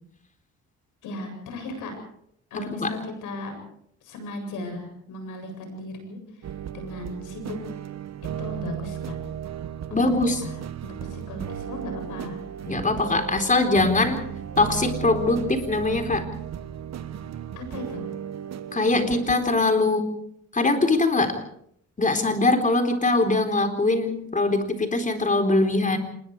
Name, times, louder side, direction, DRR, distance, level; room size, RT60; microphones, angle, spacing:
voice 1, 1.0-1.9 2.5-3.6 4.0-6.2 6.7-7.6 8.2-9.1 9.9-10.0 10.4-10.6 10.8-12.4 17.6-18.1, left 2 dB, 90° left, 5 dB, 7.9 m, -36 dB
voice 2, 2.5-2.9 9.9-10.4 12.6-14.2 14.6-16.3 18.7-20.1 20.5-21.3 22.0-26.0, left 2 dB, 25° left, 6 dB, 4.0 m, -22 dB
sound 1, 6.4-19.7, right 9 dB, 60° right, 1.4 m, -35 dB
26.5 x 21.5 x 4.9 m, 0.70 s
cardioid pair, 90°, 30 cm